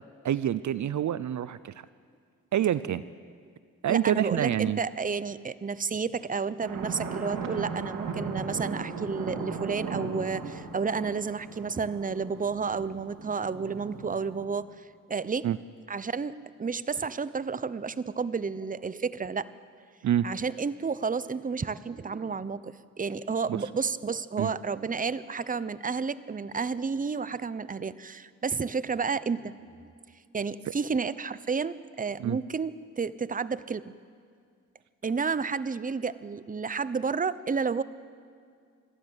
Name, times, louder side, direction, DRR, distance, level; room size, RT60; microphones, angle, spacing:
voice 1, 0.2-1.7 2.5-3.0 3.8-4.8 15.4-15.6 20.0-20.3 23.5-23.6 24.4-24.5 32.2-32.4, right 11 dB, 60° right, 16 dB, 0.6 m, -26 dB
voice 2, 3.9-15.5 15.9-19.5 20.2-29.5 29.8-29.9 30.3-32.7 33.0-33.8 35.0-37.8, right 5 dB, 25° right, 16 dB, 0.8 m, -31 dB
sound 1, 6.6-14.4, right 4 dB, 75° right, 2.6 m, -37 dB
27.5 x 12.5 x 8.0 m, 2.2 s
cardioid pair, 60°, 33 cm